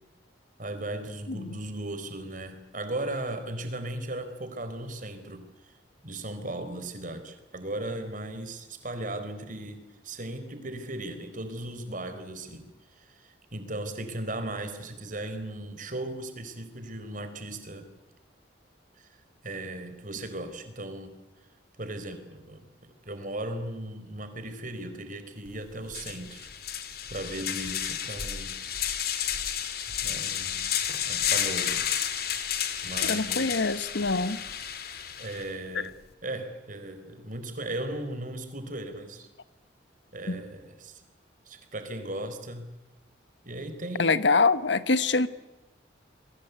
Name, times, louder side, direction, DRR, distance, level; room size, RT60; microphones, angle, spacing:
voice 1, 0.6-5.8 6.0-17.9 19.0-19.2 19.4-21.1 21.8-26.5 26.8-28.6 30.0-30.6 31.1-32.0 32.8-33.7 35.2-36.0 36.2-39.3 40.1-41.0 41.5-42.7 43.4-44.2, right 1 dB, 45° right, 9 dB, 4.2 m, -37 dB
sound 1, 25.5-25.6 25.9-35.5, left 9 dB, 55° left, 2.7 m, -31 dB
voice 2, 33.1-34.4 40.3-40.4 44.0-45.3, left 3 dB, 75° left, 14 dB, 1.3 m, -24 dB
29.0 x 22.0 x 8.2 m, 1.0 s
head